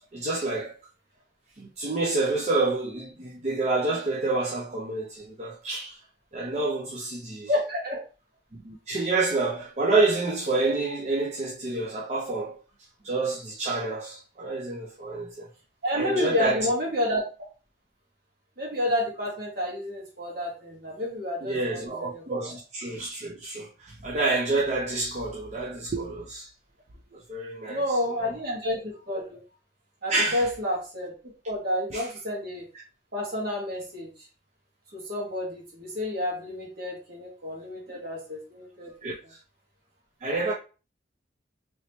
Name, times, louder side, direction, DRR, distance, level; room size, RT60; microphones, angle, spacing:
voice 1, 0.1-0.7 1.6-6.0 6.3-7.5 8.5-12.6 13.0-15.5 15.9-16.7 21.4-26.5 27.1-27.8 28.2-28.3 30.1-30.5 31.9-32.1 39.0-39.4 40.2-40.5, right 3 dB, 40° right, 0.5 m, -28 dB
voice 2, 7.5-8.0 15.8-17.2 18.6-22.5 27.7-29.4 30.0-31.1 31.4-32.6 33.1-34.1 34.9-39.1, left 1 dB, 55° right, 1.6 m, -30 dB
3.1 x 3.0 x 2.9 m
head